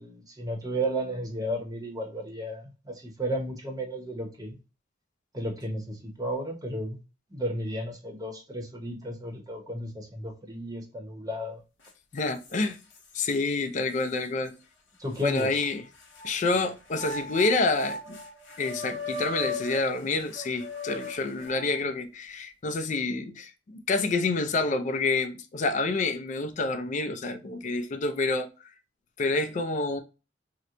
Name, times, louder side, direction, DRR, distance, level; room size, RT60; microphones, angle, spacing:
voice 1, 0.0-4.6 5.3-7.0 7.3-11.6 15.0-15.6, equal, 20° right, 0.8 m, -33 dB
sound 1, 11.8-11.9 12.4-13.3 14.0-14.1 15.2-16.3 16.9-21.8, left 1 dB, 75° left, 0.9 m, -38 dB
voice 2, 12.1-12.8 13.1-14.5 15.2-15.8 16.2-18.2 18.6-28.5 29.2-30.0, left 3 dB, 40° left, 0.4 m, -28 dB
2.9 x 2.1 x 3.6 m
head